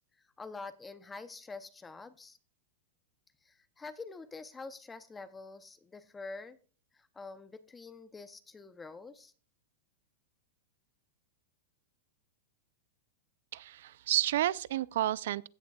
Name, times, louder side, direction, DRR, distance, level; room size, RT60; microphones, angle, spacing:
voice 1, 0.0-2.4 3.4-6.6 6.9-9.3, left 3 dB, 15° left, 0.7 m, -46 dB
voice 2, 13.5-15.5, right 13 dB, 70° right, 0.4 m, -31 dB
16.0 x 7.0 x 2.3 m
hypercardioid pair, 135°, 0 cm